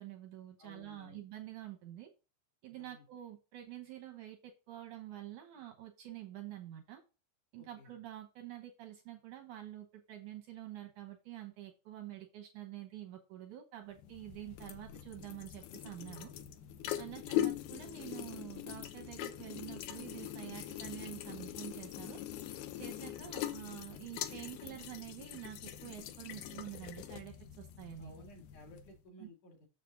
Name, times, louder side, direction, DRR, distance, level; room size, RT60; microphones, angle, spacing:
voice 1, 0.0-2.1 2.6-7.0 7.5-16.3 17.0-22.2 22.8-28.1 29.2-29.3, right 13 dB, 75° right, 3 dB, 1.8 m, -48 dB
voice 2, 0.6-1.2 2.8-3.0 7.6-7.9 17.0-17.4 28.0-29.7, left 1 dB, 55° left, 1 dB, 2.9 m, -56 dB
sound 1, 14.0-29.0, left 12 dB, 75° left, 2.4 m, -42 dB
7.2 x 6.7 x 3.8 m, 0.32 s
omnidirectional pair, 4.9 m